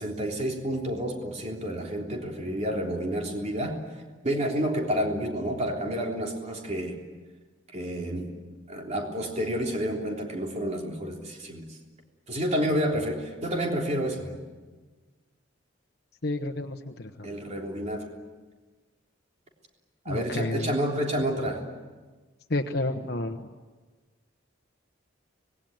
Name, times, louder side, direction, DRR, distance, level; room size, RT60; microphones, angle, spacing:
voice 1, 0.0-3.8 4.2-7.0 7.7-8.3 8.7-11.8 12.3-14.4 17.2-18.1 20.1-21.6, equal, 35° right, 0 dB, 3.5 m, -29 dB
voice 2, 16.2-17.3 20.1-20.7 22.5-23.5, left 2 dB, 60° left, 4 dB, 1.1 m, -30 dB
25.5 x 20.5 x 9.1 m, 1.3 s
head